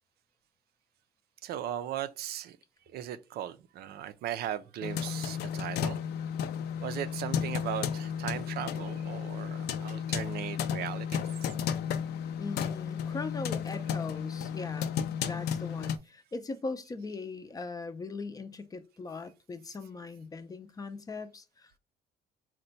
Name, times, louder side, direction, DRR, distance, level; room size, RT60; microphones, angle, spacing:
voice 1, 1.4-2.6 2.9-6.0 6.8-11.3, right 11 dB, 70° right, 0.5 m, -37 dB
sound 1, 4.8-16.0, left 8 dB, 75° left, 0.5 m, -33 dB
voice 2, 12.4-21.8, left 3 dB, 20° left, 0.5 m, -40 dB
4.3 x 2.2 x 3.9 m
cardioid pair, 110°, 17 cm